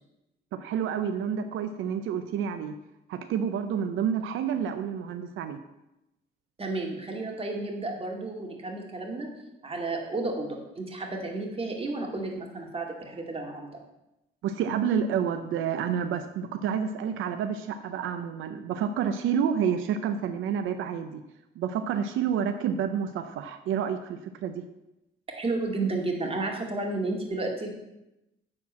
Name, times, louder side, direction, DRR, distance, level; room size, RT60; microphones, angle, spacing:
voice 1, 0.5-2.8 3.1-5.6 14.4-21.2 21.6-24.6, right 8 dB, 85° right, 8 dB, 0.6 m, -29 dB
voice 2, 6.6-9.3 9.6-13.8 25.3-27.7, right 2 dB, 30° right, 1 dB, 2.4 m, -32 dB
9.8 x 4.5 x 7.4 m, 0.92 s
cardioid pair, 90°, 20 cm